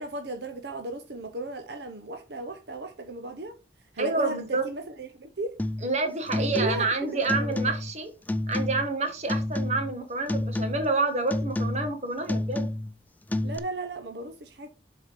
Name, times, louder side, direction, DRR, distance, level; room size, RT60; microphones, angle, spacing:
voice 1, 0.0-3.6 3.9-5.6 6.3-6.9 7.1-7.8 13.4-14.7, right 2 dB, 70° right, 0.9 m, -35 dB
voice 2, 4.0-4.7 5.8-8.1 8.5-12.7, right 3 dB, 40° right, 1.7 m, -28 dB
sound 1, 5.6-5.9 6.3-7.0 7.3-8.0 8.3-8.9 9.3-10.0 10.3-10.9 11.3-12.0 12.3-13.0 13.3-13.6, left 1 dB, 10° left, 0.3 m, -29 dB
7.3 x 4.4 x 5.3 m
head